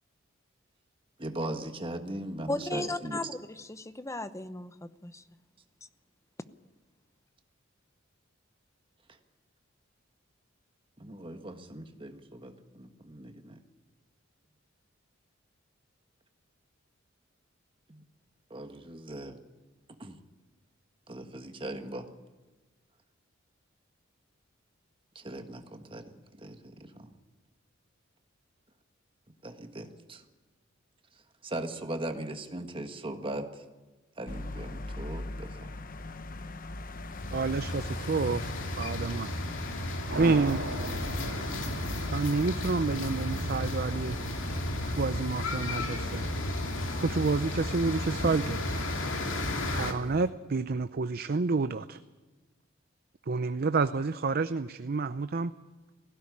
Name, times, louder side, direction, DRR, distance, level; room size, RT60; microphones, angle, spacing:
voice 1, 1.2-3.2 11.0-13.6 17.9-18.0 18.5-19.4 20.0-20.2 21.1-22.1 25.1-27.1 29.4-30.2 31.4-33.7 34.2-35.7, right 1 dB, 25° right, 6 dB, 1.6 m, -39 dB
voice 2, 2.5-5.2, left 2 dB, 15° left, 12 dB, 0.8 m, -36 dB
sound 1, 34.3-50.3, left 2 dB, 45° left, 1.0 m, -44 dB
sound 2, 37.1-49.9, left 1 dB, 70° left, 2.8 m, -33 dB
voice 3, 37.3-38.4 38.8-39.3 40.2-40.7 42.1-44.2 44.8-46.3 47.0-48.7 49.7-52.0 53.3-55.5, right 4 dB, 50° right, 12 dB, 0.5 m, -29 dB
sound 3, 40.1-42.3, right 2 dB, 80° right, 2.3 m, -36 dB
18.0 x 16.5 x 9.7 m, 1.3 s
head